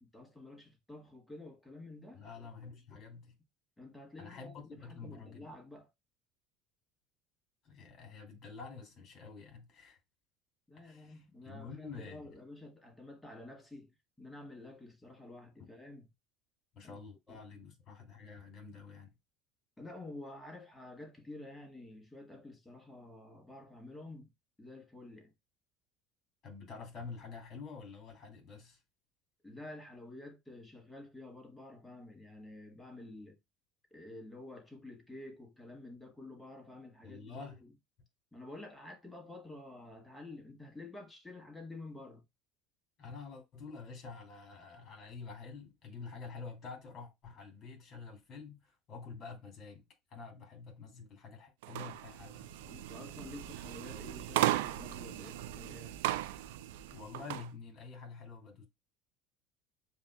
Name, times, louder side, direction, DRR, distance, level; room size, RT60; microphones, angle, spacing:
voice 1, 0.0-2.2 3.8-5.9 10.7-16.1 16.8-17.0 17.3-17.4 19.8-24.3 24.6-25.3 29.4-33.4 33.9-37.7 38.3-42.2 52.7-56.0, left 2 dB, 10° left, 1.4 m, -50 dB
voice 2, 2.1-3.4 4.2-5.5 7.6-10.0 10.8-12.3 16.7-19.1 26.4-28.8 37.0-37.6 43.0-52.8 56.9-58.6, left 4 dB, 45° left, 2.5 m, -48 dB
sound 1, 51.6-57.5, right 14 dB, 80° right, 0.4 m, -36 dB
7.2 x 2.6 x 2.2 m
hypercardioid pair, 85°, 0 cm